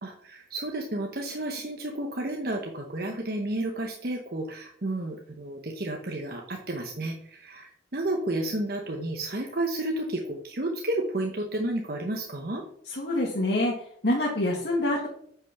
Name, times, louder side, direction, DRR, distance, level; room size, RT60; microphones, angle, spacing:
voice 1, 0.0-12.6, right 1 dB, 55° right, 1 dB, 1.1 m, -31 dB
voice 2, 12.9-13.8 14.0-15.1, left 1 dB, 70° left, -3 dB, 1.9 m, -26 dB
8.5 x 6.1 x 5.8 m, 0.65 s
head